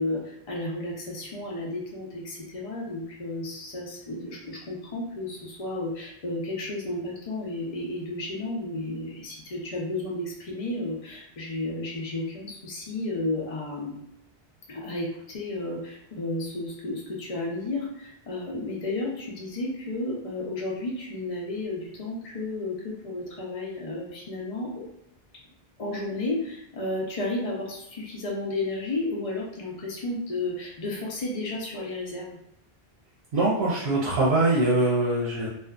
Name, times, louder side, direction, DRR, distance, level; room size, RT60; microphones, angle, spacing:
voice 1, 0.0-13.9 14.7-24.9 25.8-32.4, left 2 dB, 40° left, -2 dB, 0.6 m, -32 dB
voice 2, 33.3-35.5, right 2 dB, 90° right, -5 dB, 0.9 m, -23 dB
2.6 x 2.3 x 2.3 m, 0.80 s
omnidirectional pair, 1.0 m